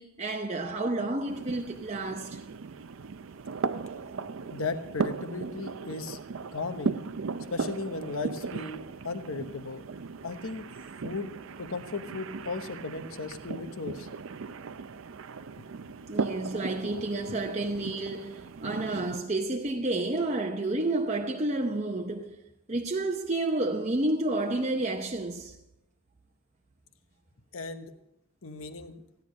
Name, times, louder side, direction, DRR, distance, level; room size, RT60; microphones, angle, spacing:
voice 1, 0.0-2.4 16.1-22.3 22.7-25.6, right 2 dB, 30° right, 0.7 m, -30 dB
sound 1, 1.3-19.2, right 4 dB, 65° right, 0.5 m, -37 dB
voice 2, 4.5-6.2 6.5-6.9 7.5-9.8 10.2-10.7 11.0-11.3 11.6-14.1 15.5-15.6 17.3-17.4 27.5-27.9 28.4-29.0, left 3 dB, 75° left, 1.1 m, -36 dB
15.5 x 10.5 x 5.3 m
head